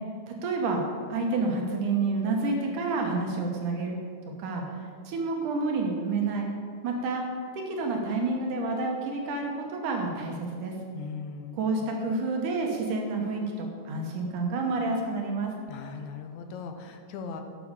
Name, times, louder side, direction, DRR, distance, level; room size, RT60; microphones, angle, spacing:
voice 1, 0.3-0.8 1.1-4.0 4.4-6.5 6.8-7.2 7.5-10.7 11.5-15.5, right 3 dB, 75° right, 1 dB, 2.6 m, -29 dB
voice 2, 10.9-11.6 15.7-17.4, left 5 dB, 75° left, 5 dB, 2.0 m, -39 dB
11.5 x 6.1 x 6.9 m, 2.2 s
omnidirectional pair, 3.8 m